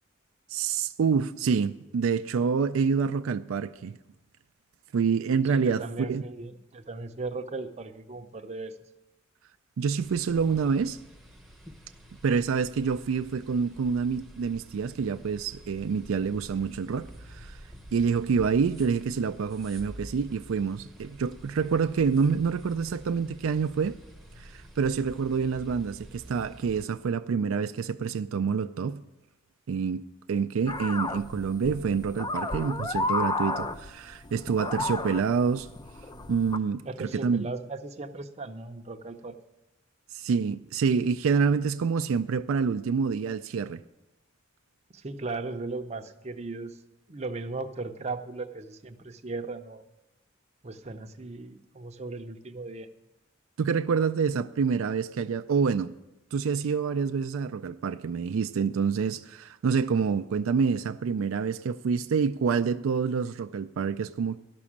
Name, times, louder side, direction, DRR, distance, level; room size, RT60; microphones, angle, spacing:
voice 1, 0.5-4.0 4.9-5.8 6.1-6.2 9.8-11.0 12.2-17.6 17.9-24.0 24.4-29.0 29.7-35.7 36.3-37.5 40.1-43.8 53.6-55.9 56.3-64.4, right 5 dB, 75° right, 0.4 m, -27 dB
voice 2, 5.4-8.7 36.8-39.4 44.9-46.8 47.1-49.8 50.6-52.9, right 3 dB, 30° right, 0.6 m, -37 dB
sound 1, 10.0-26.9, right 1 dB, ahead, 0.8 m, -48 dB
sound 2, 30.7-36.6, left 3 dB, 20° left, 0.4 m, -32 dB
11.5 x 6.1 x 8.5 m
head